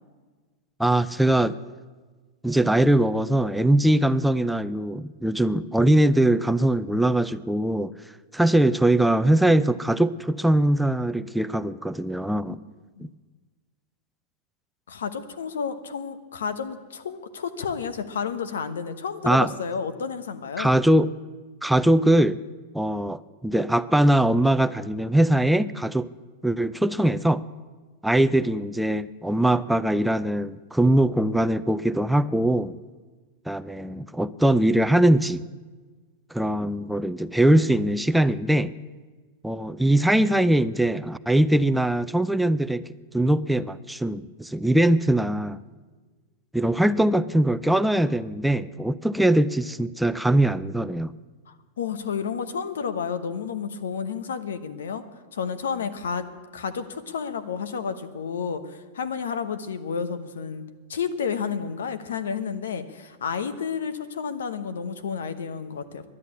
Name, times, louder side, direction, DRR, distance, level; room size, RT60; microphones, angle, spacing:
voice 1, 0.8-1.6 2.4-7.9 8.3-12.6 13.0-13.1 19.2-19.5 20.6-21.1 21.6-22.4 22.7-26.1 26.4-27.4 28.0-32.8 33.5-35.4 36.3-38.7 39.4-42.8 43.1-45.6 46.5-51.1, right 1 dB, 5° right, 13 dB, 0.4 m, -21 dB
voice 2, 14.9-20.8 51.5-55.0 55.3-56.3 56.5-60.6 60.9-66.1, left 6 dB, 90° left, 11 dB, 1.0 m, -31 dB
11.0 x 10.5 x 8.3 m, 1.4 s
hypercardioid pair, 125°, 0 cm